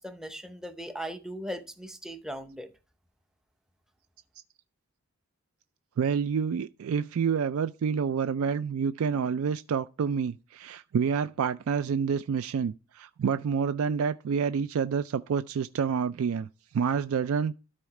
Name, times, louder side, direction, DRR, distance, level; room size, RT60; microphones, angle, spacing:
voice 1, 0.0-2.7, equal, 5° right, 0.6 m, -38 dB
voice 2, 6.0-16.5 16.7-17.5, right 6 dB, 75° right, 0.3 m, -28 dB
12.5 x 4.2 x 4.8 m
head